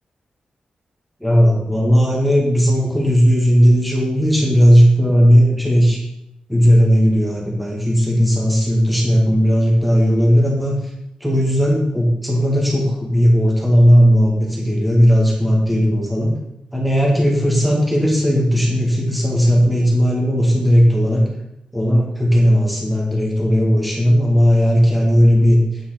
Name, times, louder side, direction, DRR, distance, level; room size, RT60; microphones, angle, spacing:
voice 1, 1.2-6.0 6.5-10.7 11.2-16.3 16.7-21.3 21.7-25.6, equal, ahead, -2 dB, 2.2 m, -15 dB
9.3 x 5.7 x 5.9 m, 0.83 s
wide cardioid pair, 155°, 2 cm